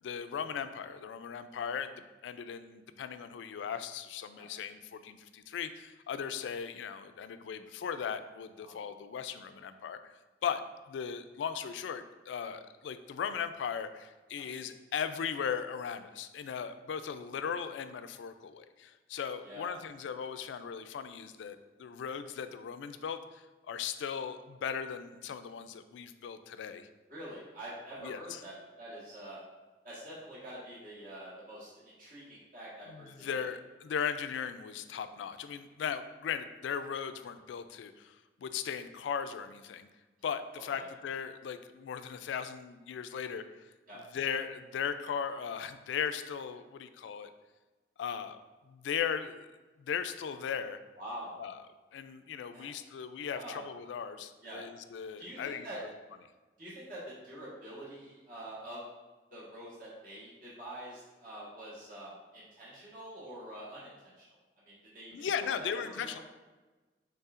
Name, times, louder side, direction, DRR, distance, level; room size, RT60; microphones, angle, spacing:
voice 1, 0.0-1.9 2.2-10.1 10.4-10.6 10.9-26.9 28.0-28.4 32.9-39.9 40.2-43.6 44.0-47.3 48.0-48.4 48.7-49.5 49.8-50.8 51.4-51.6 51.9-55.7 65.1-66.2, left 7 dB, 90° left, 11 dB, 0.3 m, -38 dB
voice 2, 19.4-19.8 27.1-29.4 29.8-33.4 40.7-40.8 43.9-44.0 51.0-51.4 52.5-52.7 53.3-53.6 54.4-54.6 55.2-55.8 56.6-58.8 59.3-64.2 64.7-66.2, right 1 dB, 50° right, -8 dB, 1.4 m, -46 dB
5.4 x 3.9 x 2.5 m, 1.2 s
head